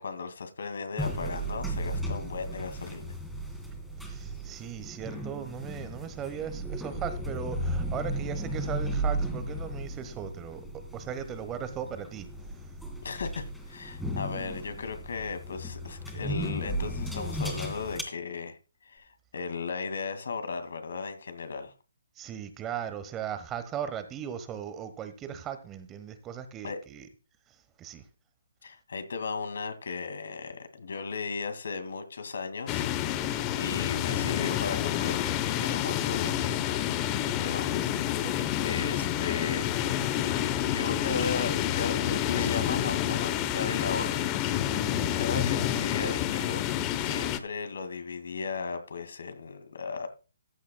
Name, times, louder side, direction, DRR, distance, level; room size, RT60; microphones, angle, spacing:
voice 1, 0.0-3.1 13.0-18.6 18.9-21.7 26.6-26.8 28.6-33.3 33.6-36.9 37.3-37.7 38.6-39.7 40.6-44.2 45.2-46.6 46.9-50.1, left 4 dB, 70° left, 2.2 m, -36 dB
sound 1, 1.0-18.0, right 1 dB, ahead, 2.2 m, -35 dB
voice 2, 4.0-12.3 22.1-27.1 27.5-28.0 38.2-38.5 44.8-45.1, right 8 dB, 20° right, 1.2 m, -38 dB
sound 2, 32.7-47.4, left 11 dB, 25° left, 0.9 m, -29 dB
14.5 x 10.0 x 2.3 m
hypercardioid pair, 145°, 0 cm